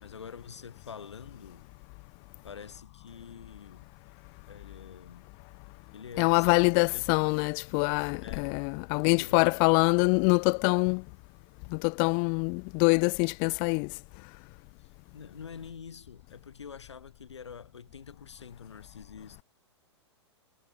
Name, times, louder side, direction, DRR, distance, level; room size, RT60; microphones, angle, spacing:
voice 1, 0.0-1.7 2.4-3.9 4.4-5.3 5.9-6.6 6.9-7.2 8.2-8.5 9.1-9.6 14.8-19.4, left 6 dB, 75° left, 2.4 m, -46 dB
voice 2, 6.2-11.0 11.7-13.9, left 40 dB or more, 30° left, 0.3 m, -25 dB
figure-of-eight pair, 110°, 15 cm